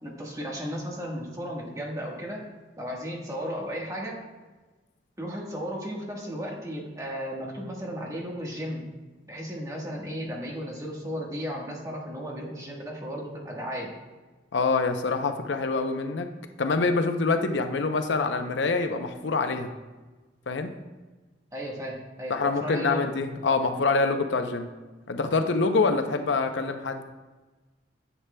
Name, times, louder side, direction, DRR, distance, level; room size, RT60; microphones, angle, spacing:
voice 1, 0.0-2.4 2.8-4.2 5.2-8.9 9.3-13.9 21.5-23.1, equal, 20° right, -2 dB, 1.3 m, -34 dB
voice 2, 14.5-16.3 16.6-19.7 20.5-20.7 22.3-24.7 25.1-27.0, left 3 dB, 75° left, 7 dB, 0.6 m, -25 dB
9.7 x 7.4 x 2.2 m, 1.2 s
head